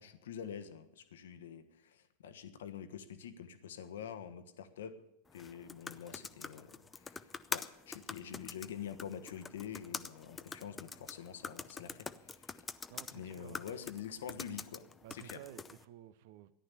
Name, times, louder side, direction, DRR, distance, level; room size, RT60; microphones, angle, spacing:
voice 1, 0.0-4.9 5.3-12.6 13.1-14.8 15.1-15.4, left 8 dB, 60° left, 1.3 m, -46 dB
sound 1, 5.3-15.8, left 4 dB, 15° left, 0.6 m, -46 dB
voice 2, 12.9-13.6 15.0-16.5, right 12 dB, 50° right, 0.7 m, -53 dB
14.0 x 11.5 x 6.8 m
figure-of-eight pair, 90°, 0 cm